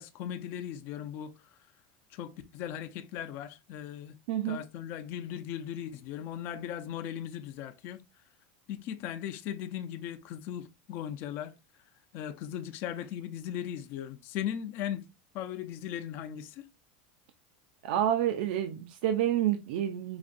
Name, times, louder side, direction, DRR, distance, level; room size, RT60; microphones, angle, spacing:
voice 1, 0.0-1.3 2.1-4.2 4.4-8.0 8.7-11.5 12.1-15.0 15.3-16.7, left 10 dB, 45° left, 0.5 m, -38 dB
voice 2, 4.3-4.6 17.8-20.2, right 11 dB, 65° right, 0.5 m, -28 dB
5.0 x 2.5 x 2.5 m
supercardioid pair, 160°, 5 cm